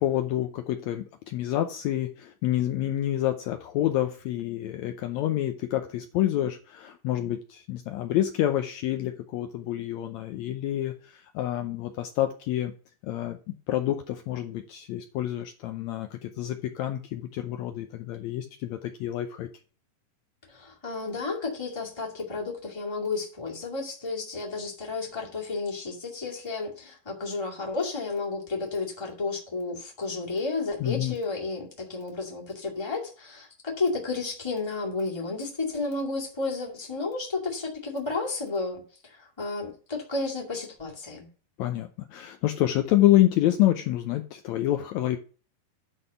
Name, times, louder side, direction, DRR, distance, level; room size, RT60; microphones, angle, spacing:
voice 1, 0.0-12.7 13.0-13.4 13.7-19.5 30.8-31.1 41.6-45.2, left 13 dB, 85° left, 1.6 m, -27 dB
voice 2, 20.5-41.3, left 3 dB, 10° left, 1.6 m, -32 dB
10.0 x 3.7 x 6.7 m
omnidirectional pair, 3.9 m